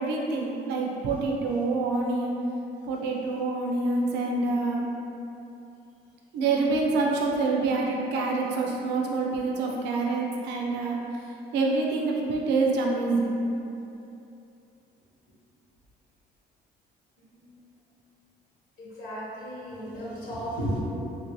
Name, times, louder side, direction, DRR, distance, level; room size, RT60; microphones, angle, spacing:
voice 1, 0.0-2.3 2.9-4.9 6.3-11.0 11.5-13.4, right 3 dB, 85° right, -1 dB, 0.5 m, -26 dB
voice 2, 18.8-20.8, equal, 65° left, -8 dB, 1.2 m, -34 dB
3.1 x 2.6 x 3.0 m, 2.8 s
cardioid pair, 110°, 17 cm